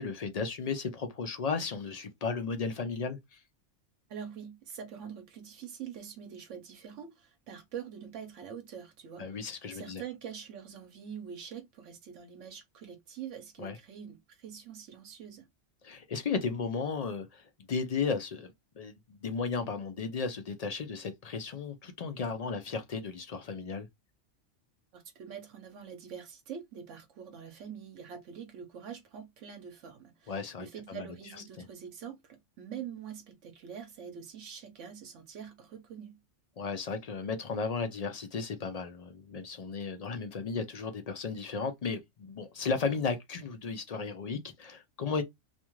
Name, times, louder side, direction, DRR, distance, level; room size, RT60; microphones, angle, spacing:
voice 1, 0.0-3.4 9.2-10.0 13.6-13.8 15.8-23.9 30.3-31.1 36.6-45.2, left 5 dB, 65° left, 0.4 m, -35 dB
voice 2, 4.1-15.5 24.9-36.2, right 8 dB, 80° right, 1.0 m, -45 dB
2.5 x 2.3 x 2.9 m
omnidirectional pair, 1.2 m